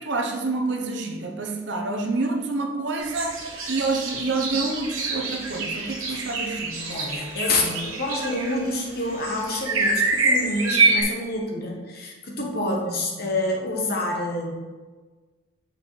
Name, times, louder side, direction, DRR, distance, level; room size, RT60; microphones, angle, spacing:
voice 1, 0.0-3.4 3.7-7.0 12.4-13.3, right 3 dB, 60° right, 2 dB, 0.8 m, -28 dB
sound 1, 3.0-11.0, right 3 dB, 85° right, 1.4 m, -26 dB
voice 2, 6.9-14.5, left 2 dB, 50° left, 0 dB, 1.1 m, -27 dB
6.3 x 5.5 x 3.2 m, 1.3 s
head